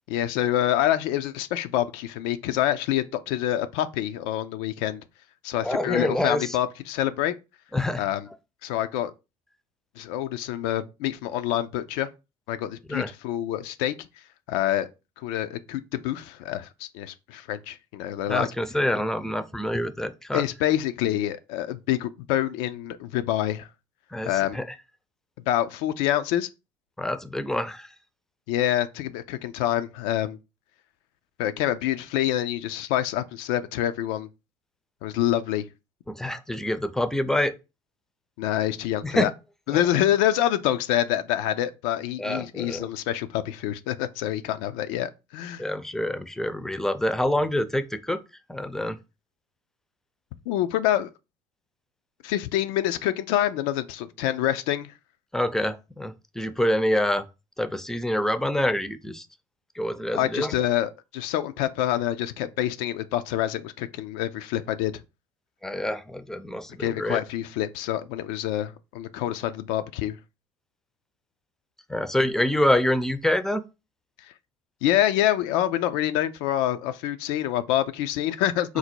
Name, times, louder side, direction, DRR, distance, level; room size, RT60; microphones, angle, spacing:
voice 1, 0.1-5.0 5.4-7.4 8.0-8.3 8.6-9.1 10.0-12.1 12.5-14.1 14.5-14.9 15.2-18.5 20.3-23.7 24.2-24.6 25.5-26.5 28.5-30.4 31.4-34.3 35.0-35.7 38.4-39.3 39.7-45.6 50.5-51.1 52.2-54.9 60.1-64.9 66.8-70.2 74.8-78.8, left 12 dB, 80° left, 0.4 m, -26 dB
voice 2, 5.6-6.6 7.7-8.0 12.9-13.1 18.3-20.4 24.1-24.7 27.0-27.9 36.1-37.5 39.0-39.3 42.2-42.9 45.6-48.2 48.5-49.0 55.3-57.2 57.6-59.3 59.8-60.5 65.6-67.2 71.9-73.6 78.7-78.8, left 1 dB, 5° left, 0.5 m, -26 dB
4.0 x 2.1 x 4.4 m
supercardioid pair, 75°, 12 cm